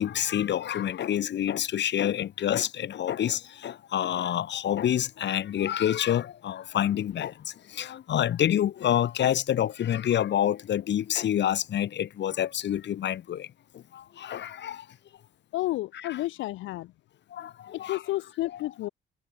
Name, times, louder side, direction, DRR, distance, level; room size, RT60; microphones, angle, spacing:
voice 1, 0.0-7.3 7.7-13.5 13.9-14.8 15.9-16.2 17.3-18.0, left 10 dB, 65° left, 1.6 m, -27 dB
voice 2, 15.5-16.9 17.9-18.9, left 17 dB, 85° left, 0.7 m, -31 dB
cardioid pair, 90°, 20 cm